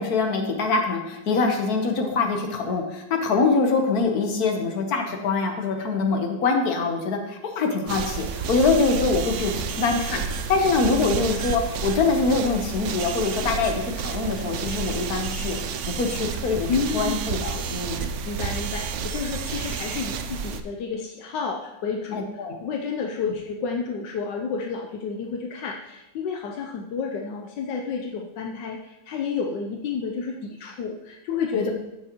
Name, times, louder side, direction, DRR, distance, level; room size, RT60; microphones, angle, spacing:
voice 1, 0.0-10.2 10.5-16.7 16.9-18.1 22.1-22.6 31.5-31.7, left 4 dB, 60° left, 3 dB, 1.6 m, -24 dB
sound 1, 7.9-20.6, right 6 dB, 70° right, 0.7 m, -30 dB
voice 2, 16.7-17.2 17.5-17.7 18.2-22.2 22.6-31.7, left 5 dB, 80° left, 1 dB, 1.4 m, -30 dB
14.5 x 6.4 x 3.0 m, 0.92 s
omnidirectional pair, 1.9 m